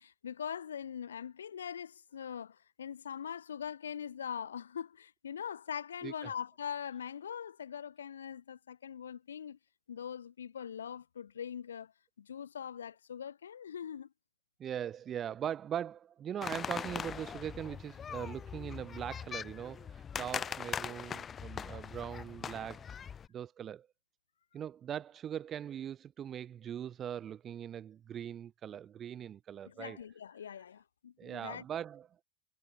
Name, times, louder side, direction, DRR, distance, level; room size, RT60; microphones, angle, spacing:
voice 1, 0.0-9.6 9.9-11.9 12.2-14.1 29.6-31.6, left 8 dB, 85° left, 4.4 m, -42 dB
voice 2, 6.0-6.3 14.6-22.8 23.3-23.9 24.5-30.0 31.2-32.1, right 9 dB, 30° right, 2.8 m, -41 dB
sound 1, 16.4-23.3, left 7 dB, 25° left, 3.6 m, -41 dB
hypercardioid pair, 100°, 0 cm